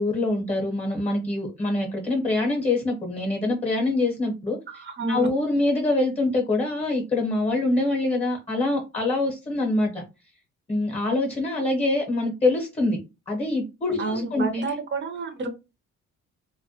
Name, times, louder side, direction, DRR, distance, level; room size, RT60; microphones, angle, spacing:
voice 1, 0.0-4.8 5.1-10.0 10.7-13.0 13.3-14.6, left 2 dB, 20° left, 0.8 m, -25 dB
voice 2, 4.7-5.3 14.0-15.5, right 3 dB, 40° right, 0.6 m, -29 dB
2.2 x 2.1 x 2.7 m
cardioid pair, 90°, 30 cm